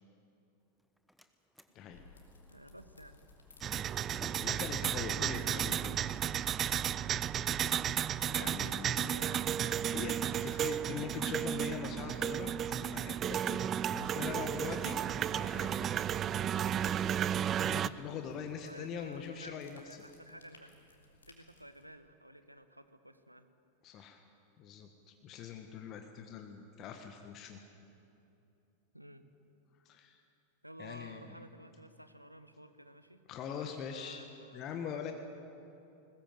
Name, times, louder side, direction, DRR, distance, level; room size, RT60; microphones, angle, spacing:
Slam, 0.6-6.6, equal, ahead, 1.2 m, -57 dB
sound 1, 1.9-21.8, left 3 dB, 75° left, 3.4 m, -60 dB
voice 1, 2.5-3.2 8.2-9.8 18.5-20.7 21.3-23.5 28.9-29.2 30.6-33.2 33.5-35.1, equal, 90° right, 10 dB, 1.2 m, -53 dB
sound 2, 3.6-17.9, right 9 dB, 25° right, 0.5 m, -33 dB
voice 2, 4.0-6.0 8.3-9.2 9.9-13.6 13.9-15.0 15.3-15.9 17.6-20.0 23.8-24.2 24.6-27.6 29.8-30.2 30.8-31.3 33.3-34.2 34.5-35.1, left 7 dB, 35° left, 5 dB, 1.5 m, -43 dB
21.5 x 20.0 x 7.7 m, 2.8 s
figure-of-eight pair, 90°, 0 cm